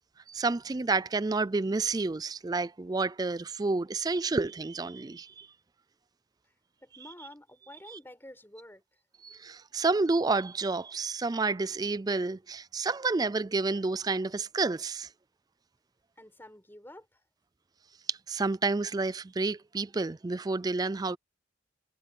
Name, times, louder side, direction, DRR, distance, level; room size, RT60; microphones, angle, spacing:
voice 1, 0.3-5.5 9.2-15.1 18.1-21.2, right 3 dB, 20° right, 0.3 m, -30 dB
voice 2, 6.8-8.8 16.2-17.2, left 1 dB, 10° left, 5.3 m, -49 dB
head